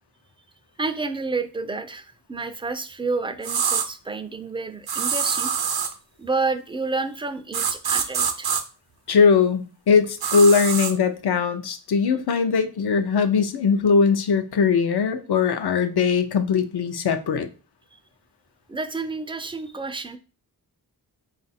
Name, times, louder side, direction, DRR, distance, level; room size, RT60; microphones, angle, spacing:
voice 1, 0.8-5.5 6.2-8.5 17.9-18.0 18.7-20.2, right 3 dB, 15° right, 10 dB, 0.3 m, -29 dB
sound 1, 3.4-3.9 4.9-5.9 7.5-8.6 10.2-10.9, right 7 dB, 70° right, 0.6 m, -24 dB
voice 2, 9.1-17.5, left 5 dB, 70° left, 8 dB, 0.6 m, -20 dB
3.9 x 2.5 x 4.1 m, 0.35 s
wide cardioid pair, 85°, 40 cm